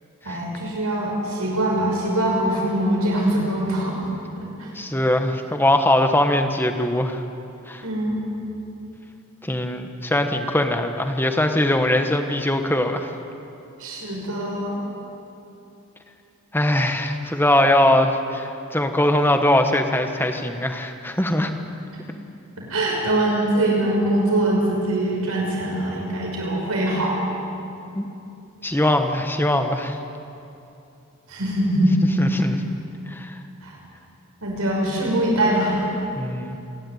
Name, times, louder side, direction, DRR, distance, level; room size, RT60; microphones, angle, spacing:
voice 1, 0.2-4.1 4.4-4.7 7.8-8.2 13.8-14.8 21.9-22.0 22.6-27.2 31.3-32.0 33.6-33.7 34.4-35.8, right 1 dB, 85° right, -2 dB, 5.8 m, -23 dB
voice 2, 4.7-7.2 7.7-7.8 9.4-13.1 16.5-21.5 27.9-28.1 28.6-30.0 32.2-32.7 33.1-33.4 36.1-36.6, left 1 dB, 10° left, 6 dB, 1.2 m, -21 dB
27.5 x 11.5 x 9.2 m, 2.8 s
head